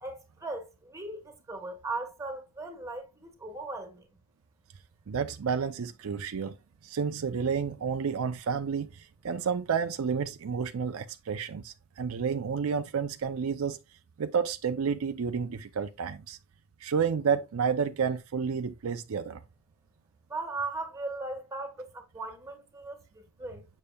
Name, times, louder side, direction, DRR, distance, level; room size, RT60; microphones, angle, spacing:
voice 1, 0.0-4.1 20.3-23.7, right 3 dB, 15° right, 1.2 m, -38 dB
voice 2, 5.1-6.5 6.8-13.8 14.2-16.4 16.8-19.4, right 6 dB, 70° right, 0.5 m, -30 dB
6.9 x 6.6 x 2.3 m
head